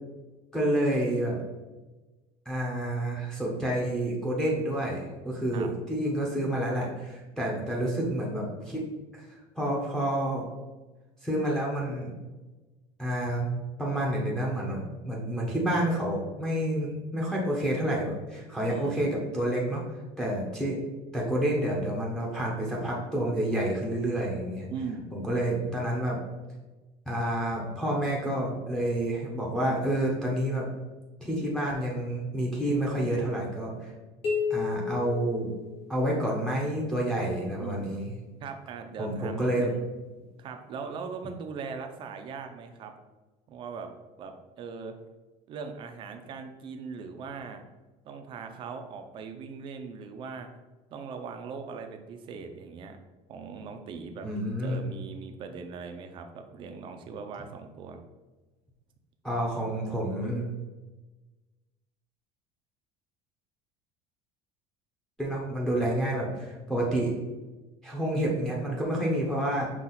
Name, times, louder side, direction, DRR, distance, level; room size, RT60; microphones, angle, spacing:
voice 1, 0.5-1.4 2.5-8.8 9.1-10.4 11.2-12.1 13.0-13.5 13.8-19.8 20.2-20.8 21.1-24.7 25.1-26.2 27.1-30.6 31.2-33.9 34.5-35.5 35.9-38.1 39.0-39.7 54.2-54.8 59.2-60.5 65.2-67.1 67.8-69.7, right 1 dB, 5° left, -3 dB, 0.7 m, -29 dB
voice 2, 18.7-19.0 24.7-25.1 37.6-37.9 38.4-39.8 40.4-42.9 43.5-43.9 44.2-44.9 45.5-47.6 48.0-50.5 50.9-53.0 53.3-54.3 54.6-58.0, right 5 dB, 35° right, 6 dB, 0.5 m, -40 dB
sound 1, 34.2-36.2, left 6 dB, 50° left, 1.4 m, -32 dB
5.7 x 2.4 x 3.9 m, 1.2 s
cardioid pair, 155°, 14 cm